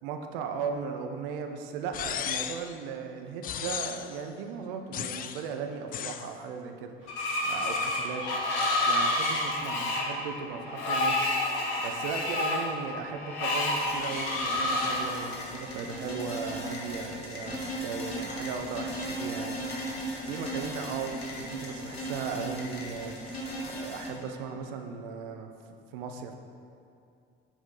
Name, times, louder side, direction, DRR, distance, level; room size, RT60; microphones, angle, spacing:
voice 1, 0.0-7.2 7.5-8.2 8.8-11.3 11.8-19.7 20.2-23.2 23.6-25.5 25.9-26.3, right 6 dB, 65° right, 5 dB, 0.7 m, -37 dB
sound 1, 1.9-2.7 3.4-4.2 4.9-5.5 5.9-6.3, left 10 dB, 30° left, 0.3 m, -35 dB
Screech, 7.1-15.0, left 2 dB, 60° left, 1.2 m, -29 dB
sound 2, 13.7-24.1, equal, 85° left, 1.0 m, -37 dB
9.9 x 5.0 x 3.8 m, 2.4 s
figure-of-eight pair, 55°, 30 cm